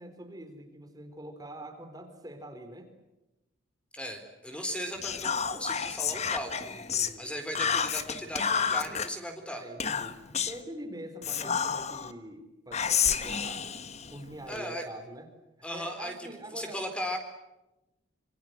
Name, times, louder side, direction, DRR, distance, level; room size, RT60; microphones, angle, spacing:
voice 1, 0.0-2.9 6.7-7.3 8.4-9.0 9.5-13.8 14.1-15.3 15.7-16.8, right 1 dB, 20° right, 6 dB, 3.9 m, -44 dB
voice 2, 3.9-9.7 14.5-14.8 15.6-17.2, equal, 5° left, 5 dB, 4.1 m, -37 dB
Whispering, 5.0-7.1 7.6-9.1 9.8-10.6 11.2-12.1 12.7-14.6, left 7 dB, 35° left, 1.6 m, -30 dB
27.0 x 25.5 x 8.1 m, 0.95 s
head